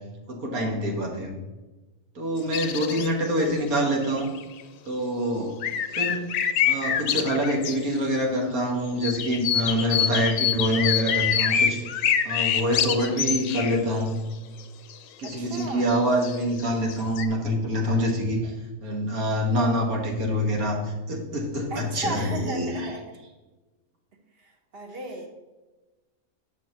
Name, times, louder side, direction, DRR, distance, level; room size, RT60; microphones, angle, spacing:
voice 1, 0.3-1.4 2.2-4.3 4.9-5.6 6.0-6.3 6.7-11.8 12.3-14.2 15.2-18.5 18.8-22.9, equal, 80° right, 1 dB, 2.0 m, -26 dB
sound 1, 2.4-3.3 3.6-3.7 3.9-4.6 5.6-8.0 9.0-13.8 14.9-15.0 15.2-17.3, left 8 dB, 70° left, 1.0 m, -26 dB
voice 2, 3.0-3.5 15.2-15.9 21.7-23.0 24.4-25.3, right 2 dB, 45° right, 3 dB, 1.2 m, -35 dB
10.5 x 6.5 x 3.0 m, 1.2 s
omnidirectional pair, 1.5 m